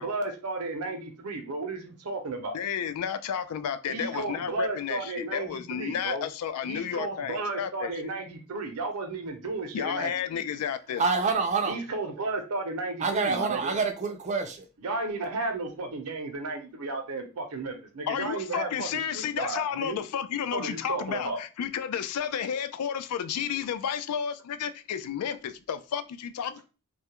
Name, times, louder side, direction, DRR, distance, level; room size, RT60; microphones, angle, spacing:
voice 1, 0.0-2.6 3.9-6.2 6.6-10.4 11.7-13.7 14.8-20.0 20.5-21.4, right 3 dB, 80° right, 0.6 m, -33 dB
voice 2, 2.5-8.0 9.7-11.1 18.1-26.6, left 8 dB, 85° left, 0.3 m, -32 dB
voice 3, 11.0-11.7 13.0-14.7, right 4 dB, 30° right, 0.4 m, -27 dB
2.3 x 2.1 x 2.8 m
head